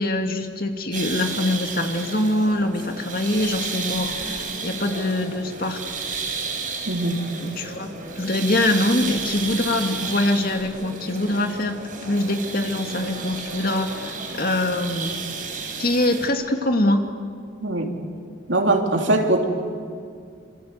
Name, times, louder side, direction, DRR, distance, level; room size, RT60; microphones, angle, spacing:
voice 1, 0.0-5.8 7.4-15.1 15.8-17.0, left 1 dB, 45° left, 5 dB, 2.2 m, -24 dB
sound 1, 0.9-16.3, right 4 dB, 40° right, 4.7 m, -32 dB
voice 2, 6.9-7.2 17.6-17.9 18.5-19.4, right 2 dB, 70° right, 2 dB, 3.3 m, -21 dB
27.0 x 26.5 x 8.2 m, 2.2 s
head